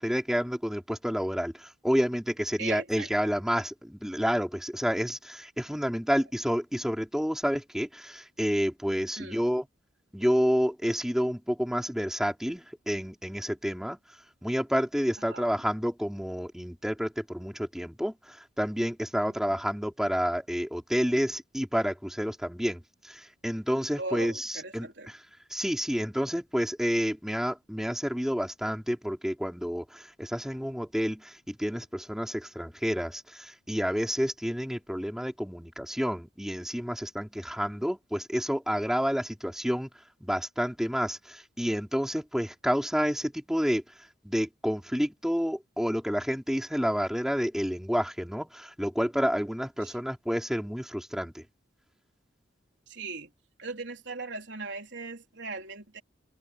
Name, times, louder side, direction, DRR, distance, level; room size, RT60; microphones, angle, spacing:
voice 1, 0.0-9.7 10.1-14.0 14.4-24.9 25.5-39.9 40.2-43.8 44.2-51.4, equal, ahead, 4.4 m, -29 dB
voice 2, 2.6-3.4 9.2-9.4 15.3-15.5 19.2-19.6 24.0-25.1 49.8-50.0 52.9-53.3 53.6-56.0, right 3 dB, 70° right, 3.9 m, -39 dB
head